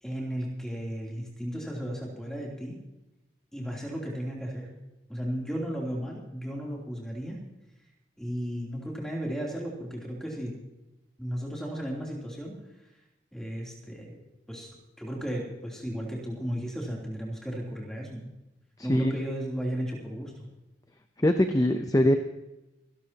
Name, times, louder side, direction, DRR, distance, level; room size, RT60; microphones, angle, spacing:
voice 1, 0.0-2.8 3.5-4.7 5.1-7.4 8.2-10.6 11.2-12.5 13.3-14.2 14.5-18.3 18.8-20.5, equal, 5° left, -3 dB, 3.1 m, -35 dB
voice 2, 18.8-19.2 21.2-22.2, left 1 dB, 20° left, 7 dB, 0.6 m, -22 dB
26.5 x 12.0 x 2.9 m, 0.97 s
head